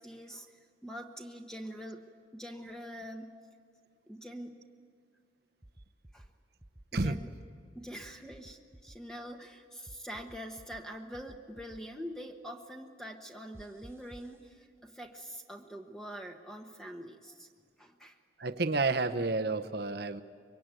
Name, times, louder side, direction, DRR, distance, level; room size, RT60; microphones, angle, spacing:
voice 1, 0.0-2.0 2.3-3.3 4.1-4.6 6.1-6.3 6.9-7.3 7.7-17.5 17.8-18.2, equal, 5° left, 3 dB, 1.1 m, -44 dB
sound 1, 5.6-6.3 6.6-7.3 8.0-9.0 9.9-10.8 11.1-11.8 13.5-14.3, right 1 dB, 15° right, 0.6 m, -53 dB
voice 2, 18.4-20.2, right 3 dB, 55° right, 8 dB, 0.9 m, -30 dB
24.5 x 23.0 x 9.2 m, 2.1 s
head